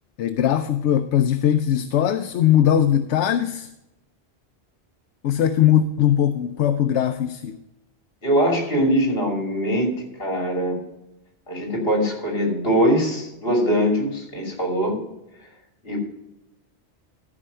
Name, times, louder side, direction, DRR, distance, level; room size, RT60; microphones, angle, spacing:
voice 1, 0.2-3.7 5.2-7.6, left 10 dB, 85° left, 0.9 m, -20 dB
voice 2, 8.2-9.9 10.2-10.8 11.5-15.0 15.8-16.0, equal, 60° left, 3.1 m, -22 dB
13.5 x 5.0 x 5.5 m
omnidirectional pair, 1.1 m